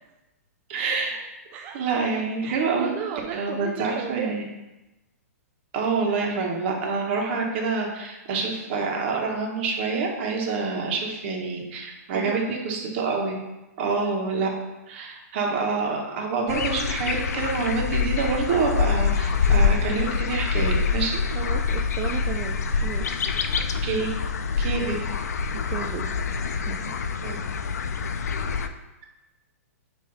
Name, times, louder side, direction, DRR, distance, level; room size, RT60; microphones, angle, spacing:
voice 1, 0.7-1.2 1.7-2.9 3.3-4.4 5.7-13.3 13.8-14.5 14.9-21.2 23.8-24.1 24.6-24.9 27.2-27.4, right 4 dB, 45° right, 0 dB, 1.4 m, -27 dB
voice 2, 2.4-4.4 12.1-12.6 15.4-15.5 21.3-23.4 24.8-25.0 25.5-26.2 26.6-26.9, right 9 dB, 25° right, 2 dB, 0.4 m, -35 dB
sound 1, 16.5-28.7, left 5 dB, 85° left, 0.5 m, -25 dB
8.7 x 3.1 x 4.1 m, 1.0 s
hypercardioid pair, 145°, 8 cm